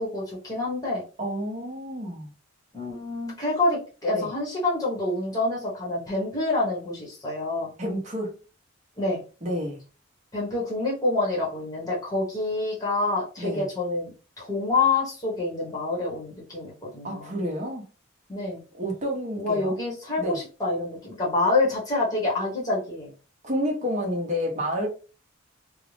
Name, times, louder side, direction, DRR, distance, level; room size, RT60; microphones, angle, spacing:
voice 1, 0.0-1.0 2.7-7.7 9.0-9.2 10.3-14.1 14.4-17.3 18.3-18.6 19.4-23.1, left 2 dB, 15° left, -4 dB, 0.9 m, -27 dB
voice 2, 1.2-2.3 4.1-4.3 7.8-8.3 9.4-9.8 13.4-13.7 17.0-17.9 18.7-19.8 20.2-20.4 23.4-24.9, equal, 35° right, 0 dB, 0.8 m, -29 dB
2.6 x 2.0 x 3.1 m, 0.35 s
head